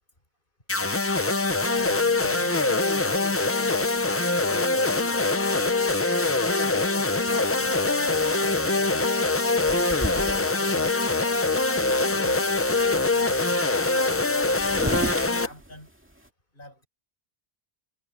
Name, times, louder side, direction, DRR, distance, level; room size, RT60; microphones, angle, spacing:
sound 1, 0.7-15.5, left 3 dB, 20° left, 0.4 m, -23 dB
voice 1, 1.7-3.9 4.2-4.7 5.3-5.8 7.3-11.6 12.1-12.4 12.9-15.9 16.5-16.9, left 1 dB, 55° left, 4.9 m, -45 dB
sound 2, 9.7-10.8 11.3-11.4 11.6-12.1 12.4-13.1 13.9-14.0 14.2-16.3, right 1 dB, 10° right, 2.2 m, -34 dB
omnidirectional pair, 1.1 m